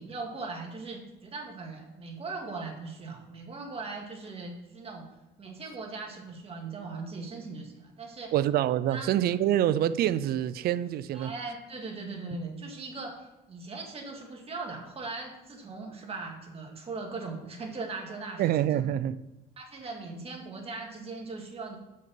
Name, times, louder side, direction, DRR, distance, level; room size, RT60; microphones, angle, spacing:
voice 1, 0.0-5.1 5.4-8.3 8.9-9.1 11.1-18.8 19.6-21.8, right 3 dB, 35° right, 2.1 m, -39 dB
voice 2, 8.3-11.3 18.4-19.2, right 11 dB, 65° right, 0.5 m, -26 dB
6.7 x 6.4 x 7.4 m
cardioid pair, 110°, 17 cm